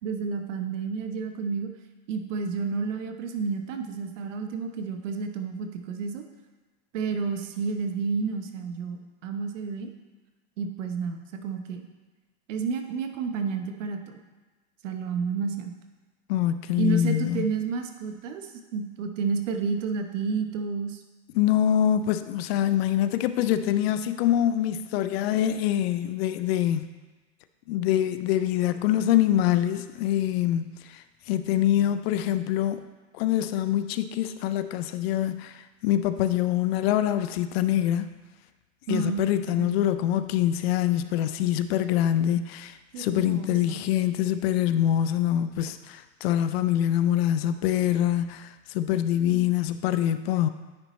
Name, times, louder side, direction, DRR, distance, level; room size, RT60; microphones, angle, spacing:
voice 1, 0.0-1.7 2.1-6.2 6.9-9.9 10.6-11.8 12.5-14.2 14.8-15.7 16.8-21.0 38.9-39.9 42.9-43.8, right 5 dB, 75° right, 6 dB, 0.9 m, -31 dB
voice 2, 16.3-17.5 21.3-26.9 27.7-32.9 33.1-38.1 38.9-50.5, left 11 dB, 55° left, 11 dB, 0.4 m, -25 dB
9.6 x 4.1 x 3.1 m, 1.3 s
supercardioid pair, 135°, 37 cm